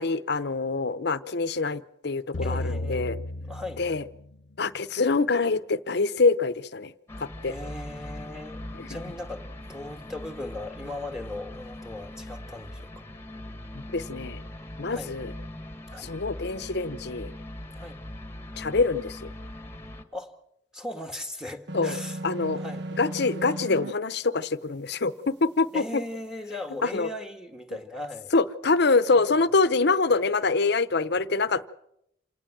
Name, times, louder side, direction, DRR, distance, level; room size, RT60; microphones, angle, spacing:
voice 1, 0.0-3.2 3.8-4.0 4.6-6.9 7.2-7.5 8.7-8.9 13.7-14.4 14.8-15.3 16.0-17.3 18.6-19.3 21.7-22.0 22.2-22.6 23.0-26.0 26.8-27.1 28.3-31.7, left 3 dB, 65° left, 0.9 m, -25 dB
sound 1, 2.3-4.6, left 1 dB, 90° left, 0.9 m, -33 dB
voice 2, 2.4-3.1 3.5-3.9 7.4-13.0 14.9-15.2 15.9-16.1 17.8-18.0 20.1-20.4 20.7-22.2 22.6-22.9 25.7-28.3 29.1-29.5, left 2 dB, 5° right, 2.0 m, -38 dB
sound 2, 7.1-20.0, left 1 dB, 15° left, 1.6 m, -41 dB
sound 3, 21.7-23.9, right 1 dB, 65° right, 1.3 m, -35 dB
27.5 x 18.5 x 7.5 m
head